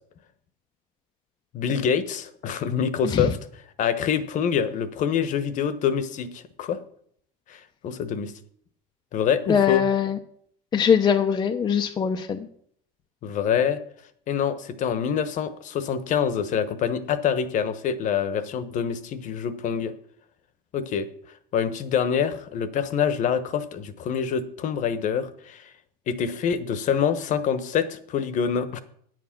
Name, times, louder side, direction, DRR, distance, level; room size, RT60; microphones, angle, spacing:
voice 1, 1.5-3.4 3.8-6.8 7.5-8.3 9.1-9.8 13.2-13.8 14.3-19.9 20.7-21.1 21.5-25.7 26.1-28.8, left 7 dB, 45° left, 13 dB, 1.1 m, -26 dB
voice 2, 9.5-10.2 10.7-12.5, left 7 dB, 20° left, 4 dB, 0.6 m, -22 dB
9.4 x 7.5 x 5.9 m, 0.64 s
supercardioid pair, 125°, 19 cm